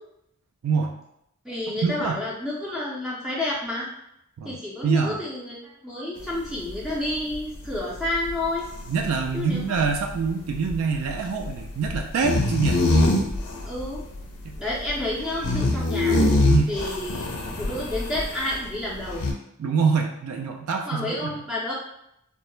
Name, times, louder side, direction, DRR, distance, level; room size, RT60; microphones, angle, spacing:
voice 1, 0.6-0.9 1.8-2.2 4.4-4.6 4.8-5.2 8.9-12.8 14.4-14.6 16.5-16.7 19.6-21.3, right 5 dB, 75° right, 3 dB, 0.3 m, -25 dB
voice 2, 1.4-3.9 4.4-5.5 5.8-8.6 9.3-9.6 13.7-14.0 14.6-16.2 16.7-17.3 17.6-19.3 20.9-21.7, left 1 dB, ahead, -7 dB, 0.4 m, -30 dB
sound 1, 6.2-18.6 18.9-19.3, left 2 dB, 90° left, 0.4 m, -25 dB
2.2 x 2.0 x 3.0 m, 0.78 s
head